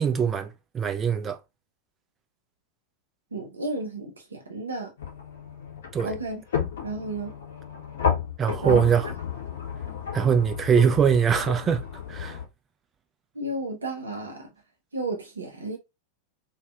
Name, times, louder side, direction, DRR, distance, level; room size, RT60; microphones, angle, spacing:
voice 1, 0.0-1.4 5.9-6.1 8.4-9.1 10.1-11.8 12.1-12.4, right 7 dB, 25° right, 0.4 m, -22 dB
voice 2, 3.3-4.9 6.0-6.4 6.8-7.3 8.6-8.8 13.4-14.4 14.9-15.8, right 2 dB, 75° right, 0.5 m, -32 dB
sound 1, 5.0-12.4, left 7 dB, 65° left, 0.7 m, -32 dB
2.5 x 2.1 x 2.3 m
figure-of-eight pair, 90°, 0 cm